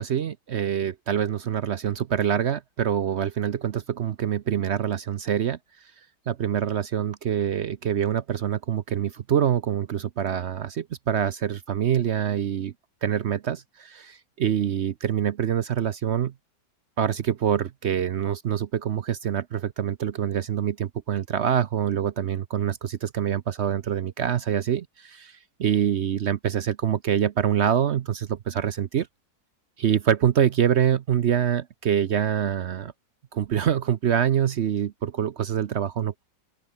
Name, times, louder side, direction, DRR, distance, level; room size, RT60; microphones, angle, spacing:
voice 1, 0.0-5.6 6.3-12.7 13.0-16.3 17.0-29.1 29.8-32.9 33.3-36.2, right 9 dB, 60° right, 0.7 m, -25 dB
open air
omnidirectional pair, 1.8 m